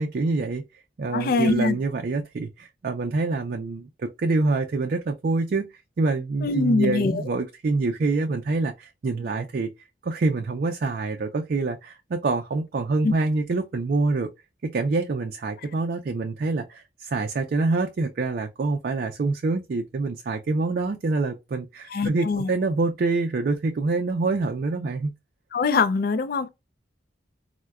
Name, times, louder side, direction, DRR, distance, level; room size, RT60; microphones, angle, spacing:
voice 1, 0.0-5.7 6.0-9.7 10.0-14.3 14.6-25.1, right 3 dB, 55° right, 0.4 m, -26 dB
voice 2, 1.1-1.8 6.4-7.2 13.0-13.1 21.9-22.5 25.5-26.5, left 4 dB, 55° left, 0.4 m, -23 dB
4.5 x 2.1 x 2.3 m
head